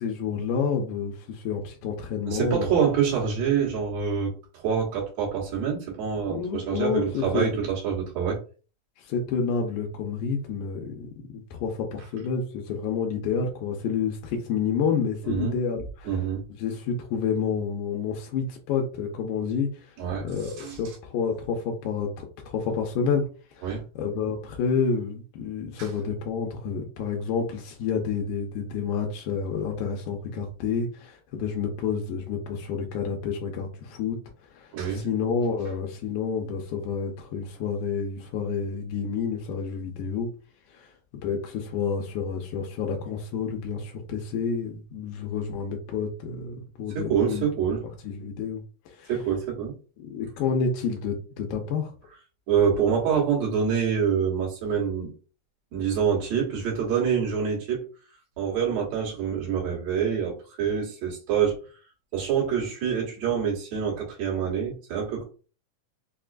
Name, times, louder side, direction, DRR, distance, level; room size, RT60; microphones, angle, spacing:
voice 1, 0.0-2.8 6.3-7.6 9.0-16.1 16.6-20.0 20.2-23.3 23.5-34.2 34.5-40.3 40.7-40.9 41.2-47.5 48.0-49.1 50.0-51.9, left 6 dB, 90° left, 1 dB, 2.1 m, -29 dB
voice 2, 2.3-8.4 15.2-15.6 16.0-16.4 20.0-20.8 23.6-23.8 25.8-25.9 34.7-35.1 46.9-47.8 49.1-49.7 52.5-55.1 55.7-57.8 58.4-61.6 62.1-65.2, right 7 dB, 65° right, -3 dB, 2.5 m, -26 dB
5.4 x 2.2 x 2.4 m, 0.36 s
omnidirectional pair, 3.5 m